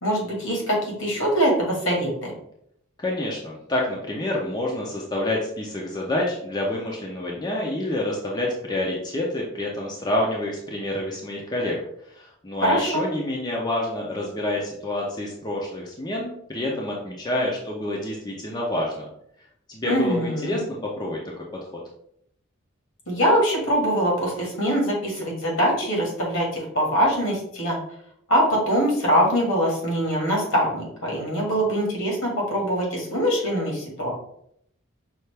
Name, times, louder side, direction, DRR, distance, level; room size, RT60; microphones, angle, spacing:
voice 1, 0.0-2.3 12.6-13.0 19.8-20.6 23.1-27.8 28.3-34.1, equal, 75° left, -2 dB, 1.7 m, -23 dB
voice 2, 3.0-11.8 12.1-19.1 19.7-21.4 21.7-21.8, left 1 dB, 20° left, -3 dB, 0.6 m, -28 dB
5.6 x 2.5 x 3.3 m, 0.70 s
head